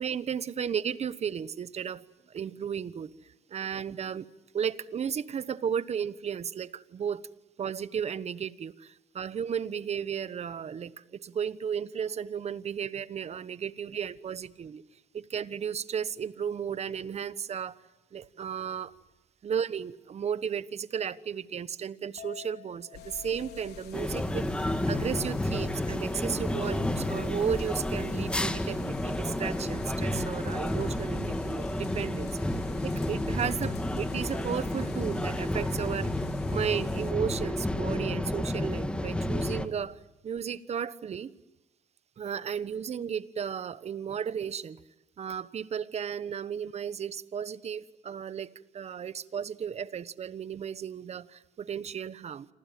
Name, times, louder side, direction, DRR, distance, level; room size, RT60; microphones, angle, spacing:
voice 1, 0.0-4.3 4.5-7.3 7.6-14.8 15.1-17.8 18.1-18.9 19.4-24.5 24.9-32.3 32.8-36.1 36.5-41.3 42.2-44.8 45.2-52.5, right 7 dB, 40° right, 15 dB, 1.1 m, -34 dB
Chink clink, 22.2-28.5, left 10 dB, 55° left, 4.9 m, -52 dB
sound 1, 22.9-37.1, left 9 dB, 75° left, 3.5 m, -48 dB
sound 2, 23.9-39.7, left 1 dB, 5° left, 1.8 m, -31 dB
28.5 x 27.0 x 7.6 m, 1.0 s
cardioid pair, 110°, 17 cm